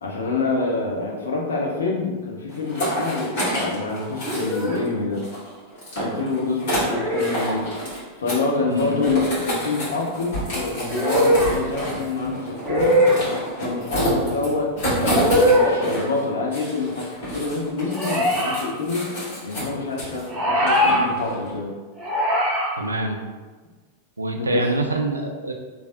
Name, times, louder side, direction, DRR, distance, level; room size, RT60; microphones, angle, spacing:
voice 1, 0.0-5.2 6.0-7.7 8.2-13.0 13.6-19.1 19.4-21.7 24.4-24.7, left 3 dB, 70° left, -1 dB, 0.5 m, -26 dB
sound 1, 2.5-4.9 5.1-8.4 8.7-16.2 16.5-20.3 20.7-21.5, equal, 50° left, 1.5 m, -29 dB
sound 2, 4.3-4.9 6.9-7.4 9.0-9.5 10.9-11.6 12.6-13.2 15.0-15.7 17.9-18.7 20.3-21.0 22.0-22.7, equal, 20° right, 0.7 m, -21 dB
voice 2, 8.7-9.0 22.8-23.2 24.2-25.5, right 2 dB, 80° right, 3 dB, 0.3 m, -25 dB
3.2 x 2.4 x 2.5 m, 1.3 s
figure-of-eight pair, 90°, 0 cm